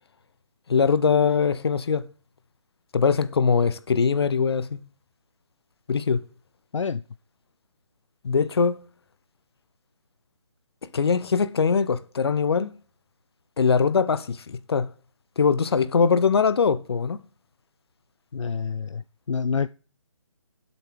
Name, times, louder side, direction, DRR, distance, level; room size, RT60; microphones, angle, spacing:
voice 1, 0.7-2.0 2.9-4.8 5.9-6.2 8.2-8.8 10.9-12.7 13.6-14.9 15.4-17.2, left 5 dB, 55° left, 0.9 m, -22 dB
voice 2, 18.3-19.0 19.3-19.7, left 5 dB, 75° left, 0.5 m, -27 dB
18.5 x 8.1 x 3.8 m
figure-of-eight pair, 150°, 16 cm